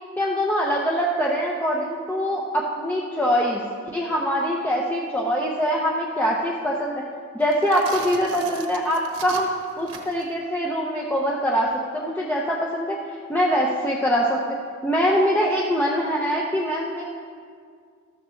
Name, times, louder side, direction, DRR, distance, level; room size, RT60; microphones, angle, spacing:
voice 1, 0.2-3.7 3.9-7.0 7.3-9.5 9.8-13.0 13.3-14.4 14.8-17.0, equal, 10° left, -3 dB, 0.7 m, -23 dB
sound 1, 7.4-10.3, right 6 dB, 65° right, 1.2 m, -39 dB
13.5 x 13.5 x 3.2 m, 2.1 s
head